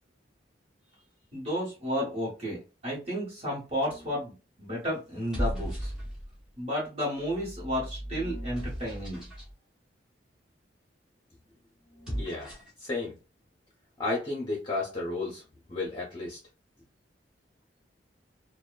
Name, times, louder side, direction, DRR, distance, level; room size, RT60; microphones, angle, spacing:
voice 1, 1.3-2.6 2.8-5.9 6.6-9.2, equal, 35° right, -5 dB, 1.2 m, -32 dB
sound 1, 3.9-4.3 5.1-6.5 7.2-9.5 11.9-12.8, equal, 5° right, 0.9 m, -36 dB
voice 2, 12.2-12.5 12.8-13.1 14.0-15.4 15.7-16.4, left 3 dB, 25° left, -4 dB, 0.7 m, -32 dB
2.8 x 2.2 x 2.3 m, 0.30 s
head